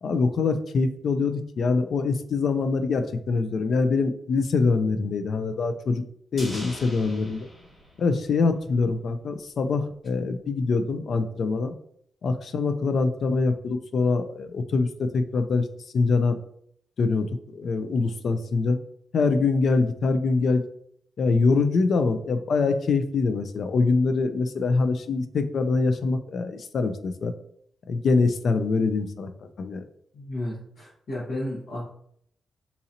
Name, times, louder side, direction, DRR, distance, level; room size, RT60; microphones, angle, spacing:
voice 1, 0.0-6.0 6.3-7.5 8.0-11.7 12.2-15.7 15.9-16.4 17.0-18.8 19.1-20.6 21.2-27.3 27.9-29.3 29.6-29.8, left 4 dB, 55° left, 9 dB, 0.3 m, -24 dB
sound 1, 6.4-8.8 9.0-9.1, left 1 dB, 30° left, 1.1 m, -42 dB
voice 2, 30.1-31.9, left 1 dB, 85° left, -9 dB, 1.1 m, -33 dB
4.0 x 2.5 x 2.8 m, 0.68 s
wide cardioid pair, 135°, 0 cm